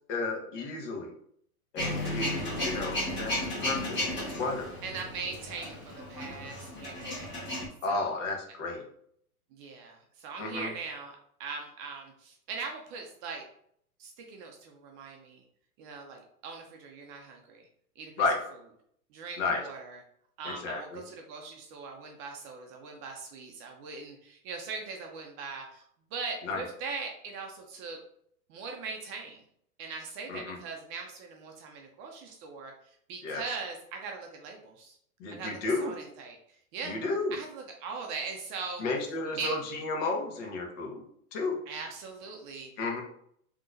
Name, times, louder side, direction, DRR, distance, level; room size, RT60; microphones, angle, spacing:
voice 1, 0.1-1.1 1.7-4.0 4.4-4.7 7.8-8.8 10.4-10.7 18.2-18.4 19.4-19.6 20.4-21.0 26.4-26.6 30.3-30.6 33.2-33.4 35.2-35.9 36.8-37.3 38.8-41.0 41.3-41.6 42.8-43.0, left 3 dB, 55° left, 2 dB, 1.1 m, -32 dB
Male speech man speaking / Vehicle / Engine starting, 1.8-7.7, left 1 dB, 25° left, 1.4 m, -34 dB
voice 2, 1.8-2.6 4.8-7.2 7.9-8.1 9.5-13.4 14.0-15.4 15.8-17.7 18.0-18.1 19.1-20.0 20.4-25.8 26.1-28.0 28.5-29.4 29.8-35.0 35.3-37.0 37.3-38.8 39.4-39.6 41.7-42.7, right 4 dB, 30° right, 2 dB, 0.5 m, -40 dB
3.8 x 2.9 x 2.5 m, 0.67 s
hypercardioid pair, 115°, 44 cm